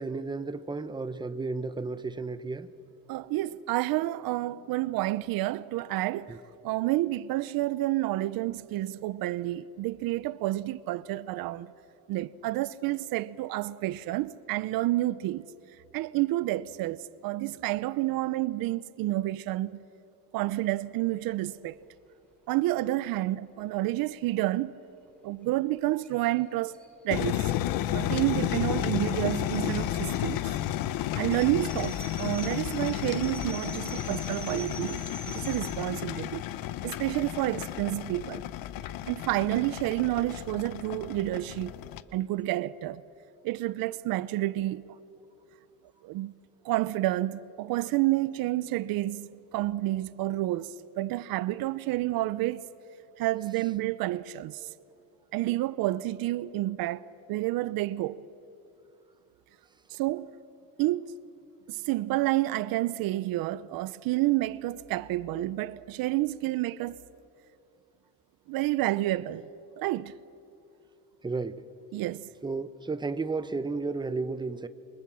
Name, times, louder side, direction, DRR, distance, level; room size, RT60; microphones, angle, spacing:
voice 1, 0.0-2.7 6.3-6.4 17.4-17.5 71.2-71.6 72.4-74.7, right 3 dB, 15° right, 0.9 m, -33 dB
voice 2, 3.1-6.4 6.6-11.7 12.1-15.5 15.9-19.8 20.3-21.8 22.5-24.7 25.2-26.8 27.0-27.5 27.8-30.6 31.2-36.4 36.8-38.5 39.1-41.8 42.1-43.0 43.4-44.8 46.0-46.3 46.6-52.7 53.2-54.7 55.3-58.2 59.9-60.3 60.8-61.2 61.7-67.0 68.5-69.5 69.8-70.2 71.9-72.3, right 16 dB, 80° right, 0.7 m, -29 dB
sound 1, 26.0-26.1 26.4-26.5 26.7-35.7, equal, 5° left, 6.2 m, -46 dB
sound 2, 27.1-42.0, left 13 dB, 75° left, 1.0 m, -32 dB
29.0 x 24.5 x 7.6 m
cardioid pair, 130°, 34 cm